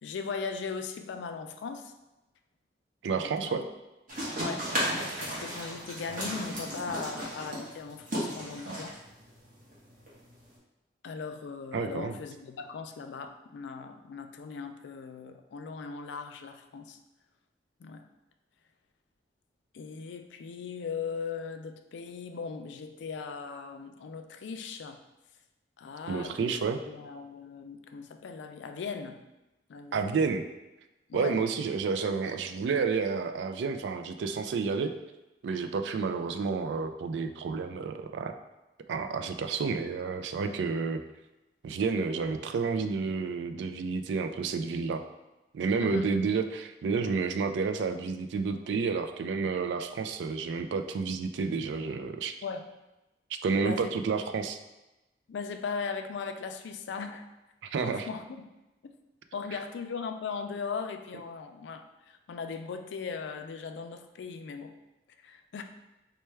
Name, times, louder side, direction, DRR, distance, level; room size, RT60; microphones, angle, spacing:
voice 1, 0.0-1.9 3.1-3.6 4.4-9.0 11.0-17.0 17.8-18.0 19.7-25.0 25.8-26.5 26.8-29.2 29.7-30.1 31.1-31.4 45.8-46.1 52.4-52.7 53.6-53.9 55.3-57.2 57.8-58.5 59.3-64.7 65.2-65.6, left 5 dB, 85° left, 7 dB, 0.3 m, -38 dB
voice 2, 3.0-3.6 11.7-12.2 26.1-26.8 29.9-30.4 31.1-34.9 35.4-38.4 38.9-41.0 41.6-45.0 45.5-52.3 53.4-54.6 57.6-58.1, right 5 dB, 80° right, 8 dB, 0.3 m, -30 dB
sound 1, 4.1-10.5, equal, 45° right, 1.2 m, -35 dB
4.3 x 2.2 x 3.2 m, 1.0 s
head